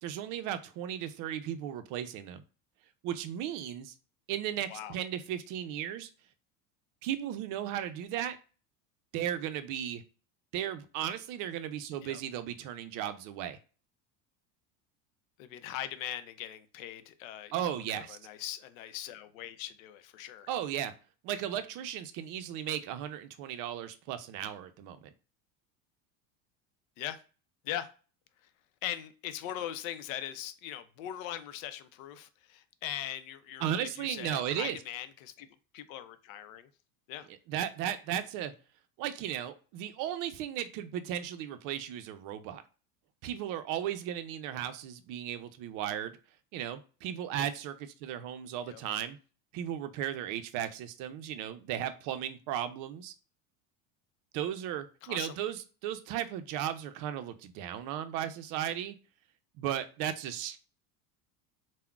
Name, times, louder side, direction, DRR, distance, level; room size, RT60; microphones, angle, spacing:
voice 1, 0.0-2.4 3.0-3.9 4.3-6.1 7.0-8.4 9.1-10.0 10.5-13.6 17.5-18.2 20.5-20.9 21.2-25.1 33.6-34.8 37.5-38.5 39.0-42.6 43.2-46.2 46.5-49.2 49.5-53.1 54.3-59.0 59.6-60.6, right 10 dB, 55° right, 0.5 m, -35 dB
voice 2, 15.4-20.5 27.0-27.2 27.6-27.9 28.8-35.5 35.7-36.7 37.1-37.3 48.7-48.8 55.0-55.4, left 12 dB, 80° left, 0.5 m, -40 dB
3.5 x 2.1 x 2.3 m
supercardioid pair, 115°, 39 cm